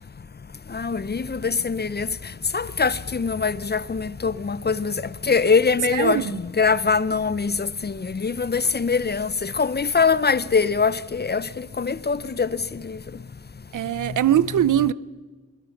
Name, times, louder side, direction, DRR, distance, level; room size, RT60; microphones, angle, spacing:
voice 1, 0.7-13.2 14.0-14.2, left 5 dB, 30° left, 0.7 m, -23 dB
voice 2, 5.9-6.3 13.7-14.9, right 11 dB, 70° right, 0.6 m, -21 dB
23.0 x 21.0 x 5.8 m
cardioid pair, 60°, 32 cm